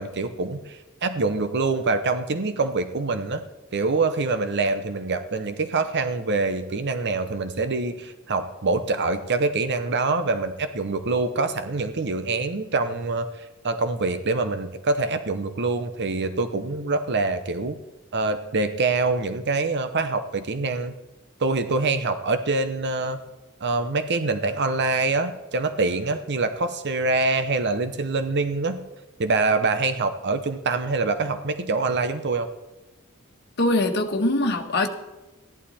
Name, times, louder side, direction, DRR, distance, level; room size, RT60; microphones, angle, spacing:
voice 1, 0.0-3.4 3.7-17.8 18.1-20.9 21.4-23.2 23.6-28.8 29.2-32.5, right 3 dB, 55° right, 10 dB, 0.8 m, -25 dB
voice 2, 33.6-34.9, left 2 dB, 55° left, 3 dB, 1.5 m, -22 dB
14.5 x 11.5 x 4.2 m, 1.1 s
head